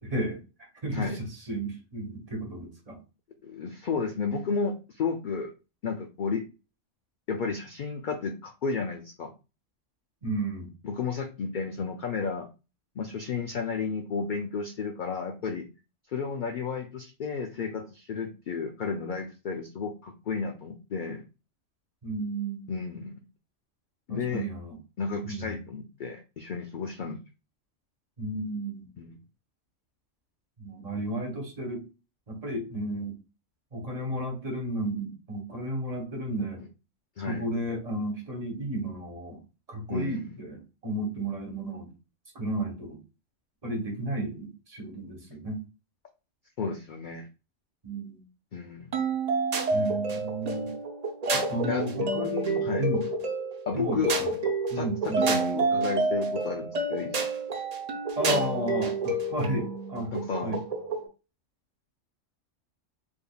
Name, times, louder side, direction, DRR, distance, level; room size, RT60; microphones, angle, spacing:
voice 1, 0.0-0.4 0.8-3.0 10.2-10.7 22.0-22.7 24.1-24.8 25.1-25.6 28.2-28.9 30.6-31.8 32.3-33.1 33.7-36.6 37.2-39.4 39.7-41.9 42.3-43.0 43.6-45.6 47.8-48.2 49.7-50.7 51.3-53.0 53.7-54.3 54.7-55.3 58.1-60.1 60.4-60.6, right 1 dB, 30° right, 1 dB, 1.2 m, -33 dB
voice 2, 3.4-5.5 5.8-6.4 7.3-9.3 10.8-12.5 13.0-15.7 16.1-21.2 22.7-23.2 24.1-24.5 25.0-27.2 29.0-29.2 37.2-37.5 39.9-40.3 46.6-47.3 48.5-49.0 51.7-51.8 52.6-52.9 53.7-54.1 54.7-57.2 60.1-60.6, left 5 dB, 60° left, 5 dB, 0.5 m, -32 dB
sound 1, 48.9-61.1, right 2 dB, 50° right, 0.5 m, -29 dB
3.6 x 3.4 x 2.2 m, 0.30 s
omnidirectional pair, 1.3 m